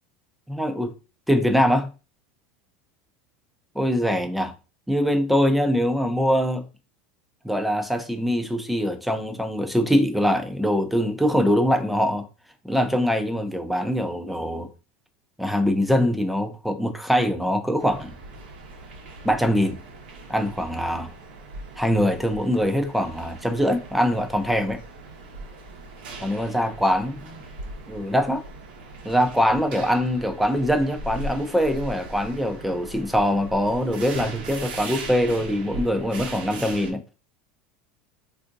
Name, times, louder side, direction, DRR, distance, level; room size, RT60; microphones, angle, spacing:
voice 1, 0.5-0.9 1.3-1.9 3.8-4.5 4.9-6.6 7.4-12.3 12.6-14.7 15.4-18.1 19.2-19.8 20.3-21.1 21.8-24.8 26.2-27.4 27.9-28.4 29.0-37.0, equal, ahead, 0.5 m, -23 dB
sound 1, 17.8-36.9, right 2 dB, 85° right, 0.9 m, -39 dB
3.4 x 2.6 x 2.6 m
supercardioid pair, 125°, 5 cm